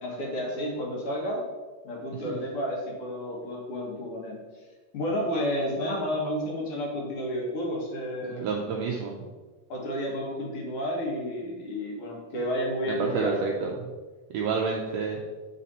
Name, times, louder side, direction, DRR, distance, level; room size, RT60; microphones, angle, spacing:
voice 1, 0.0-1.4 1.8-4.4 4.9-8.5 9.7-13.3, equal, 55° left, -1 dB, 2.0 m, -31 dB
voice 2, 8.4-9.2 13.0-13.9 14.3-15.2, right 5 dB, 85° right, 0 dB, 1.4 m, -29 dB
9.3 x 4.2 x 4.1 m, 1.3 s
omnidirectional pair, 3.7 m